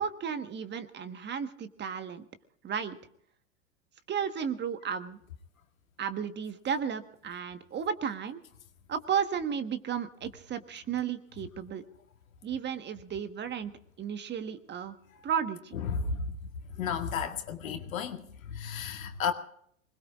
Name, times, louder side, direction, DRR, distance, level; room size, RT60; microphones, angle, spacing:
voice 1, 0.0-2.3 2.6-3.0 4.1-5.2 6.0-8.4 8.9-11.8 12.4-13.7 14.0-15.0 15.2-15.8, right 7 dB, 25° right, 1.3 m, -33 dB
voice 2, 15.7-16.3 16.7-19.3, left 6 dB, 75° left, 2.1 m, -33 dB
26.0 x 20.5 x 2.4 m
hypercardioid pair, 100°, 40 cm